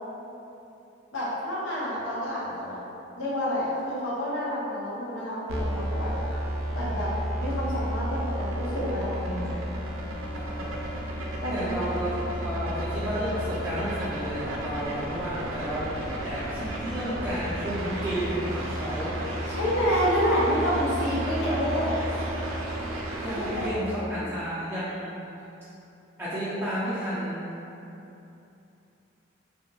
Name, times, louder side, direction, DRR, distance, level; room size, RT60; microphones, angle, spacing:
voice 1, 1.1-2.8 3.2-6.1 6.7-7.1 7.4-9.6 11.4-11.7 19.4-22.2 23.3-23.9 24.1-24.3, equal, 70° left, -7 dB, 0.6 m, -29 dB
sound 1, 5.5-23.7, right 1 dB, 85° right, 0.4 m, -32 dB
voice 2, 10.3-10.7 11.5-19.2 23.2-25.2 26.2-27.5 27.8-27.9, equal, 10° right, -12 dB, 0.4 m, -32 dB
2.6 x 2.2 x 2.6 m, 2.9 s
head